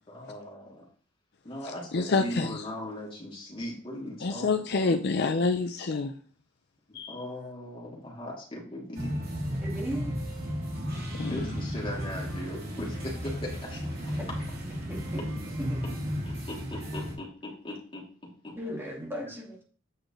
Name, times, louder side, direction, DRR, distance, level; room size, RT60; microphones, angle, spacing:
voice 1, 0.1-0.8 1.4-4.9 7.1-9.1 11.3-13.8 16.2-18.0 18.4-18.5, left 1 dB, 25° left, 2.7 m, -39 dB
voice 2, 1.6-2.6 4.2-6.1 6.9-7.2 11.1-11.5, left 4 dB, 55° left, 0.5 m, -28 dB
sound 1, 8.9-17.1, equal, 50° right, 2.9 m, -34 dB
voice 3, 9.6-10.1 14.9-15.2 15.6-15.8 18.6-19.6, equal, 10° right, 1.8 m, -36 dB
8.7 x 6.5 x 3.1 m
head